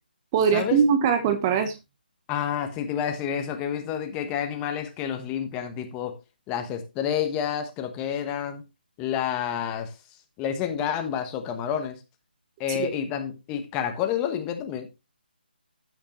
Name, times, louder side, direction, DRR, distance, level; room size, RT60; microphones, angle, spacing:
voice 1, 0.3-1.7 12.7-12.9, right 7 dB, 20° right, 0.9 m, -22 dB
voice 2, 2.3-6.2 6.5-8.6 9.0-9.9 10.4-12.0 12.6-14.9, left 9 dB, 15° left, 1.1 m, -29 dB
14.5 x 5.2 x 3.0 m
figure-of-eight pair, 160°, 6 cm